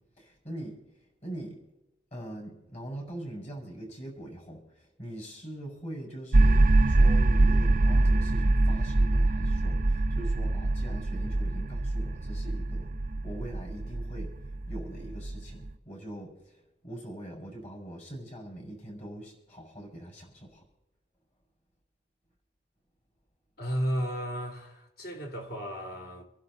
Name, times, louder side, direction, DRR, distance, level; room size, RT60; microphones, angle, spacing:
voice 1, 0.0-1.7 2.1-20.6, right 1 dB, 40° left, 6.4 m, -42 dB
sound 1, 6.3-15.7, right 2 dB, 45° right, 0.6 m, -24 dB
voice 2, 23.6-26.2, equal, 55° left, 3.3 m, -33 dB
27.0 x 11.5 x 4.1 m
head